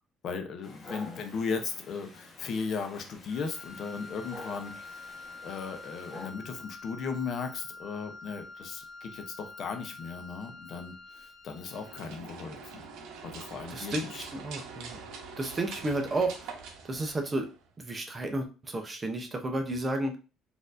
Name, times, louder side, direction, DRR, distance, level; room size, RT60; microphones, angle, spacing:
voice 1, 0.2-12.9 13.2-14.3, left 5 dB, 50° left, 6 dB, 0.6 m, -37 dB
Dog, 0.6-6.3, left 2 dB, 25° left, 0.9 m, -49 dB
Wind instrument woodwind instrument, 3.3-12.1, left 3 dB, 40° right, 1.9 m, -47 dB
sound 1, 11.5-17.7, right 5 dB, 80° right, 0.8 m, -44 dB
voice 2, 13.7-15.0 15.4-16.5 16.8-17.5 17.8-20.2, right 2 dB, 20° right, 4 dB, 0.6 m, -32 dB
4.2 x 2.6 x 2.4 m, 0.33 s
cardioid pair, 135°, 0 cm